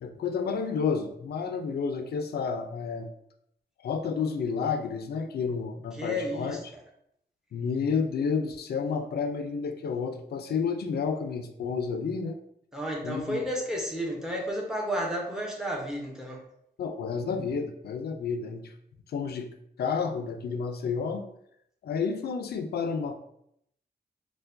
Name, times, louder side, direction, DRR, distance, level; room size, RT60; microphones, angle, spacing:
voice 1, 0.0-3.1 3.8-6.7 7.5-12.4 13.0-13.5 16.8-18.7 19.1-19.5 19.8-21.2 21.8-23.2, left 5 dB, 70° left, 6 dB, 0.4 m, -30 dB
voice 2, 6.0-6.6 12.7-16.4, equal, 5° right, -1 dB, 0.7 m, -32 dB
4.4 x 2.2 x 2.5 m, 0.74 s
wide cardioid pair, 155°, 17 cm